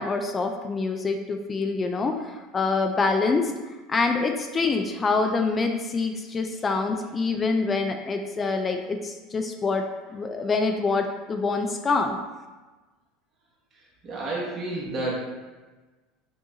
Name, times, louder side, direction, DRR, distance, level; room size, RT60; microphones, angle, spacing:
voice 1, 0.0-3.5 3.9-9.8 10.1-12.2, left 4 dB, 25° left, 4 dB, 0.4 m, -26 dB
voice 2, 13.7-15.2, right 2 dB, 45° right, -4 dB, 1.4 m, -31 dB
6.4 x 2.4 x 2.7 m, 1.2 s
hypercardioid pair, 90°, 0 cm